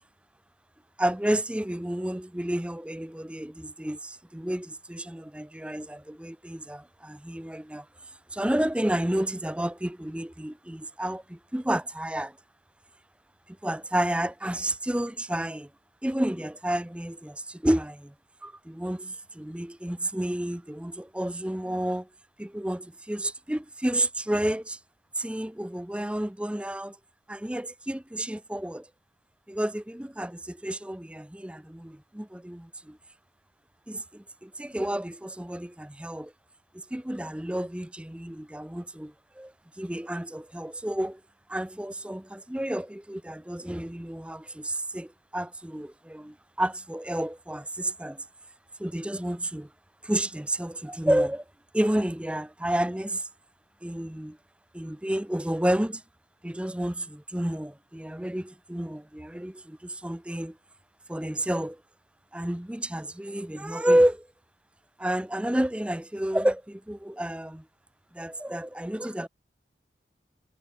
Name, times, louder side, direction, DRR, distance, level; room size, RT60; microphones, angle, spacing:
voice 1, 1.0-7.9 8.3-12.4 13.5-15.7 16.0-18.1 18.4-22.1 22.4-24.8 25.2-27.0 27.3-28.9 29.5-33.0 33.9-36.3 36.7-41.2 41.5-48.2 48.8-49.7 50.0-51.4 51.7-53.3 53.8-54.4 54.7-56.0 56.4-60.6 61.1-61.8 62.3-64.3 65.0-67.6 68.1-69.3, right 1 dB, 5° right, 0.5 m, -30 dB
head